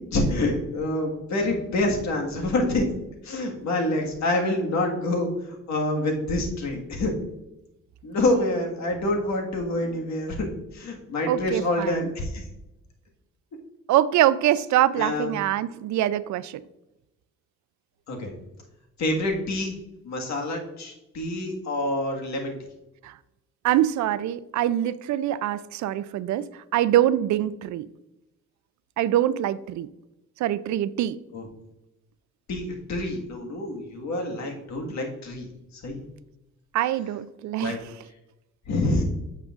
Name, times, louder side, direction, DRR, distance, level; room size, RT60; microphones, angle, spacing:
voice 1, 0.1-2.9 3.2-5.3 5.7-7.1 8.0-10.5 10.7-12.4 15.0-15.3 18.1-18.3 19.0-19.7 20.0-22.5 31.3-31.5 32.5-35.5 35.8-36.0 37.6-37.8 38.7-39.0, left 1 dB, 65° left, 1.7 m, -27 dB
voice 2, 11.3-12.1 13.9-16.6 23.0-23.1 23.6-26.5 26.7-27.9 29.0-29.9 30.4-31.2 36.7-37.8, right 12 dB, 70° right, 0.4 m, -24 dB
8.7 x 6.7 x 2.5 m
cardioid pair, 90°, 30 cm